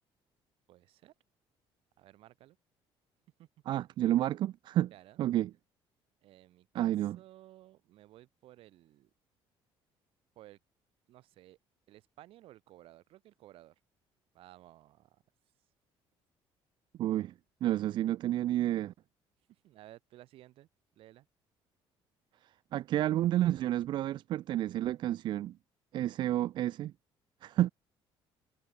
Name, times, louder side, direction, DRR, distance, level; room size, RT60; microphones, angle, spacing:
voice 1, 0.7-1.1 2.0-2.6 3.4-3.5 4.9-5.2 6.2-9.1 10.4-10.6 11.1-11.6 11.9-13.8 14.3-15.2 19.5-20.7 21.0-21.3, right 15 dB, 65° right, 7.6 m, -56 dB
voice 2, 3.7-4.9 5.2-5.5 6.7-7.2 17.0-17.3 17.6-18.9 22.7-25.5 25.9-26.9 27.4-27.7, right 13 dB, 50° right, 0.5 m, -30 dB
cardioid pair, 170°, 10 cm